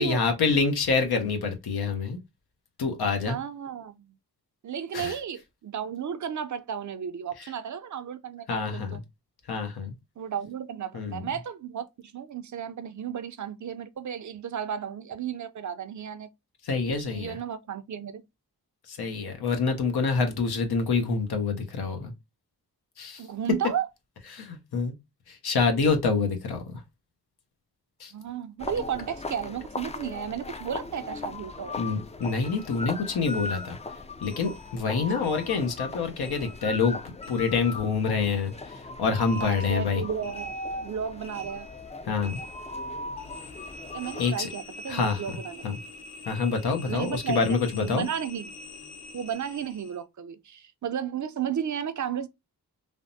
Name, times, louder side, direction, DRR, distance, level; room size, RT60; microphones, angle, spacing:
voice 1, 0.0-2.2 2.8-3.4 4.9-5.1 8.5-9.0 9.5-9.9 10.9-11.3 16.6-17.4 18.9-22.1 23.0-23.2 24.3-24.9 25.3-26.7 28.0-28.1 31.8-33.8 34.2-37.0 37.3-40.0 42.1-42.4 44.2-44.5 44.9-45.4 45.6-45.8 46.3-48.1, left 4 dB, 85° left, 0.8 m, -27 dB
voice 2, 3.2-4.0 4.6-9.0 10.2-16.3 17.0-18.2 23.2-23.9 28.1-31.8 39.4-40.5 40.8-41.7 43.9-45.7 46.9-48.5 49.1-52.3, right 8 dB, 55° right, 0.5 m, -33 dB
sound 1, 28.6-44.3, left 2 dB, 20° left, 0.3 m, -38 dB
sound 2, 32.2-34.9 35.2-37.9 38.2-50.0, left 1 dB, 45° left, 1.1 m, -46 dB
3.3 x 2.0 x 2.5 m
cardioid pair, 60°, 37 cm